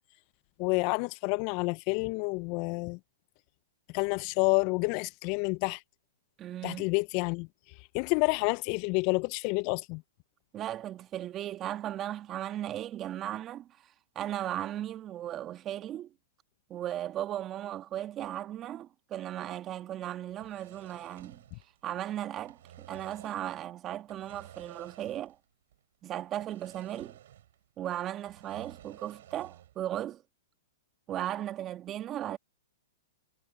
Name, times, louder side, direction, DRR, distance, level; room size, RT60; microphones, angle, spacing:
voice 1, 0.6-3.0 3.9-5.8 6.6-7.5 7.9-10.0, left 29 dB, 45° left, 0.4 m, -29 dB
voice 2, 6.4-6.9 10.5-16.1 16.7-21.4 21.8-25.4 26.0-27.2 27.8-30.2 31.1-32.4, right 12 dB, 30° right, 1.9 m, -36 dB
sound 1, 20.3-22.0 22.3-23.5 24.0-25.4 25.7-25.8 26.4-27.6 27.9-29.8, right 12 dB, 65° right, 7.1 m, -53 dB
hypercardioid pair, 125°, 0 cm